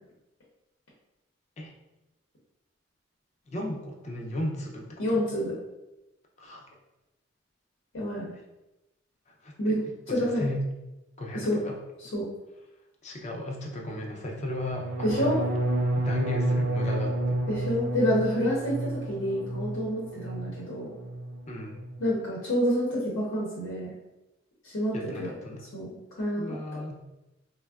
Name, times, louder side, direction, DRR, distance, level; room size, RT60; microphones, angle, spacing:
voice 1, 3.5-5.2 6.4-6.7 9.4-9.8 10.1-10.7 11.2-11.8 13.0-15.4 16.0-17.4 21.5-21.8 24.9-25.7 26.4-27.0, left 1 dB, 35° left, 0 dB, 0.4 m, -35 dB
voice 2, 5.0-5.6 7.9-8.3 9.6-9.8 10.1-10.5 11.3-11.6 12.0-12.2 15.0-15.4 17.5-20.9 22.0-23.9 24.6-25.3 25.7-25.9 26.2-26.4, equal, 85° left, -6 dB, 0.7 m, -28 dB
sound 1, 14.7-20.6 20.9-21.4 21.7-22.1, right 1 dB, 50° right, 0.3 m, -30 dB
3.4 x 2.1 x 2.3 m, 0.95 s
head